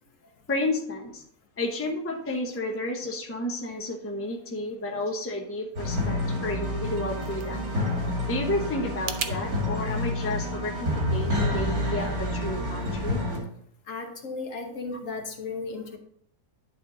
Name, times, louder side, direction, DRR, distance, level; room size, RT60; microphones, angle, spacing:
voice 1, 0.5-1.2 1.6-7.6 8.2-13.2, left 1 dB, 10° left, 2 dB, 0.8 m, -31 dB
sound 1, 5.8-13.4, left 1 dB, 85° right, 2.8 m, -28 dB
sound 2, 6.7-9.4, right 7 dB, 55° right, 0.7 m, -38 dB
voice 2, 13.9-16.0, left 3 dB, 60° left, 4 dB, 1.4 m, -35 dB
10.5 x 4.1 x 3.9 m, 0.67 s
omnidirectional pair, 1.6 m